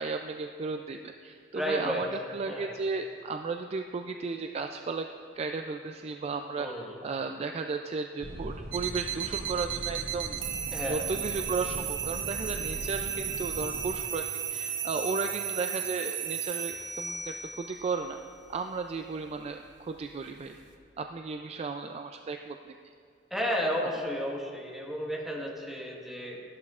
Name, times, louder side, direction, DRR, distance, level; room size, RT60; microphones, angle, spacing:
voice 1, 0.0-5.1 5.3-6.7 7.0-10.4 10.9-18.2 18.5-20.6 21.0-22.8, right 4 dB, 35° right, 5 dB, 0.3 m, -34 dB
voice 2, 1.5-2.1 2.5-2.7 6.6-7.0 10.7-11.0 23.3-26.4, equal, ahead, -2 dB, 1.4 m, -32 dB
sound 1, 8.2-13.9, equal, 65° right, 1.1 m, -41 dB
sound 2, 8.7-20.7, right 9 dB, 80° right, 0.8 m, -36 dB
13.5 x 11.0 x 2.4 m, 2.5 s
head